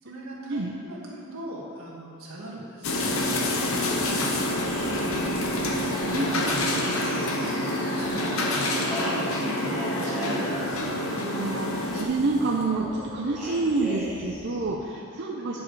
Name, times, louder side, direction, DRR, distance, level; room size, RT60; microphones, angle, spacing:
voice 1, 0.0-2.8 3.1-4.2 4.8-7.3 7.6-10.8 15.5-15.6, right 1 dB, 75° right, -4 dB, 1.7 m, -40 dB
sound 1, 2.8-12.0, left 1 dB, 70° left, 0.9 m, -27 dB
sound 2, 4.6-14.6, equal, 20° left, 2.1 m, -39 dB
voice 2, 6.1-6.4 10.9-15.6, right 3 dB, 55° right, -2 dB, 0.6 m, -28 dB
Speech, 8.6-12.6 13.4-14.2, equal, ahead, 1.3 m, -38 dB
9.2 x 5.2 x 4.8 m, 2.6 s
head